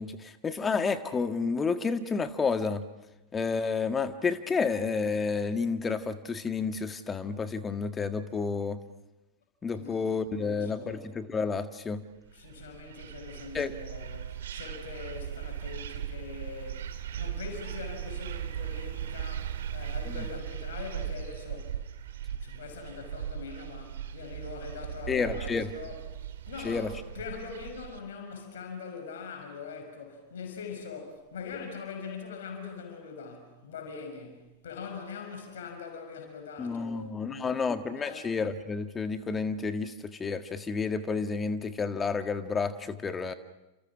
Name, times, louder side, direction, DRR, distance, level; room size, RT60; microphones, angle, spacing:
voice 1, 0.0-2.8 3.3-8.8 9.6-12.0 13.5-13.7 20.1-20.2 25.1-25.7 26.6-26.9 36.6-43.3, left 5 dB, 20° left, 1.7 m, -30 dB
voice 2, 9.7-11.0 12.3-21.8 22.4-26.0 26.5-37.7 38.0-38.3, left 5 dB, 60° left, 6.3 m, -42 dB
sound 1, 12.3-28.0, right 9 dB, 60° right, 2.2 m, -38 dB
29.5 x 28.0 x 6.2 m
figure-of-eight pair, 90°, 0 cm